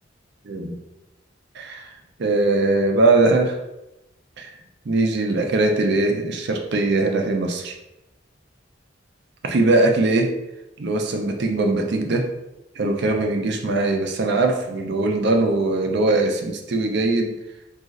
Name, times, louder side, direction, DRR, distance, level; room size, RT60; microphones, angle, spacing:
voice 1, 1.6-1.9 2.2-3.6 4.4-4.5 4.9-7.8 9.4-10.3 10.8-12.3 12.8-17.3, right 2 dB, 65° right, 3 dB, 0.5 m, -21 dB
3.9 x 2.4 x 2.4 m, 0.92 s
head